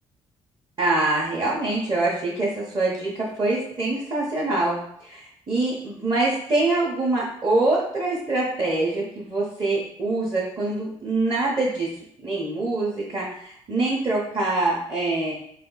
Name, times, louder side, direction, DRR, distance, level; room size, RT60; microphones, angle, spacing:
voice 1, 0.8-11.9 12.2-15.3, right 2 dB, 30° right, -6 dB, 1.1 m, -24 dB
3.4 x 2.5 x 4.0 m, 0.69 s
figure-of-eight pair, 45°, 15 cm